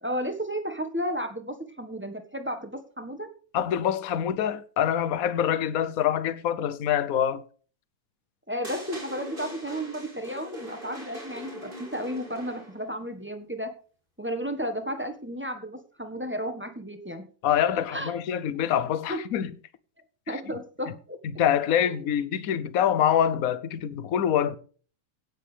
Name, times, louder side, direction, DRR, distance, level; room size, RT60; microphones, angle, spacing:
voice 1, 0.0-3.3 8.5-13.7 14.2-17.3 17.7-18.1 19.1-19.2 20.3-21.2 21.9-22.0, equal, 5° right, 1.0 m, -33 dB
voice 2, 3.5-7.4 17.4-19.5 20.3-20.4 21.4-24.6, left 9 dB, 60° left, 0.9 m, -25 dB
sound 1, 8.6-12.9, equal, 25° right, 4.8 m, -41 dB
17.0 x 8.3 x 3.4 m
omnidirectional pair, 2.4 m